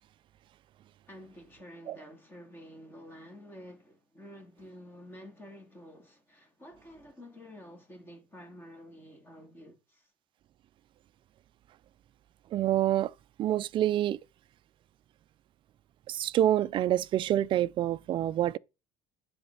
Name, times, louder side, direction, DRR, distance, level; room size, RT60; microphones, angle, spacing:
voice 1, 1.1-10.1, equal, 15° left, 2.7 m, -50 dB
voice 2, 12.5-13.1 13.4-14.2 16.1-18.6, right 12 dB, 40° right, 0.4 m, -27 dB
9.5 x 4.2 x 5.4 m
cardioid pair, 145°, 13 cm